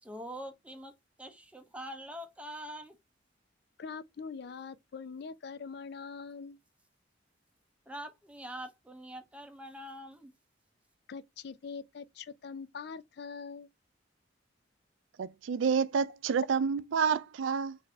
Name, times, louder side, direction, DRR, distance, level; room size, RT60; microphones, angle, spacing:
voice 1, 0.0-0.9 1.2-3.0 7.9-10.3, equal, 5° right, 0.6 m, -44 dB
voice 2, 3.8-6.6 11.1-13.7, left 5 dB, 60° left, 0.4 m, -43 dB
voice 3, 15.2-17.8, right 6 dB, 90° right, 0.4 m, -29 dB
4.1 x 2.6 x 3.2 m
head